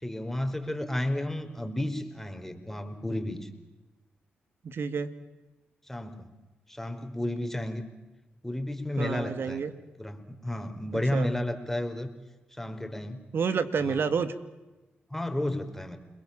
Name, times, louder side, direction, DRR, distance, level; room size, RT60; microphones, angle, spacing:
voice 1, 0.0-3.5 5.9-6.3 6.7-7.8 8.4-9.6 10.0-12.1 12.5-13.2 13.8-14.0 15.1-16.0, left 1 dB, 5° left, 6 dB, 5.0 m, -32 dB
voice 2, 4.6-5.1 9.0-9.7 11.1-11.3 13.3-14.3, right 5 dB, 65° right, 12 dB, 2.2 m, -29 dB
29.5 x 22.0 x 7.5 m, 1.1 s
supercardioid pair, 45°, 4 cm